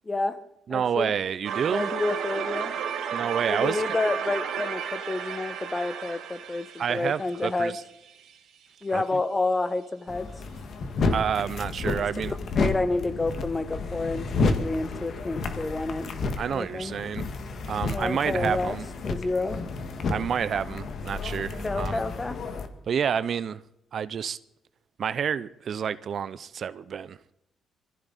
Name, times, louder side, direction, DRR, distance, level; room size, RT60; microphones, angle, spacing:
voice 1, 0.0-0.4 0.7-1.1 1.7-2.7 3.5-7.8 8.8-10.3 12.0-16.1 16.5-17.0 17.9-18.7 19.0-19.6 21.6-22.4, left 2 dB, 25° left, 1.4 m, -29 dB
voice 2, 0.7-1.9 3.1-3.8 6.8-7.7 8.9-9.2 11.1-12.3 16.4-17.2 17.7-18.9 20.1-22.0 22.9-23.6 23.9-24.4 25.0-27.3, right 7 dB, 55° right, 0.6 m, -29 dB
sound 1, 1.4-8.3, right 7 dB, 80° right, 2.4 m, -33 dB
sound 2, 10.1-22.7, left 3 dB, 60° left, 1.7 m, -31 dB
22.0 x 14.5 x 4.1 m
cardioid pair, 80°, 0 cm